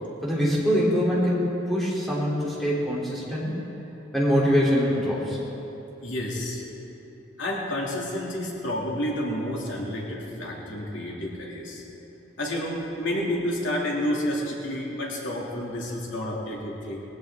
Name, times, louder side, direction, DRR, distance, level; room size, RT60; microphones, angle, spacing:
voice 1, 0.2-3.5 4.1-5.4, equal, ahead, -7 dB, 3.5 m, -23 dB
voice 2, 6.0-6.6 7.4-11.8 12.4-17.0, left 1 dB, 80° left, -3 dB, 2.9 m, -30 dB
21.5 x 16.0 x 3.8 m, 2.9 s
head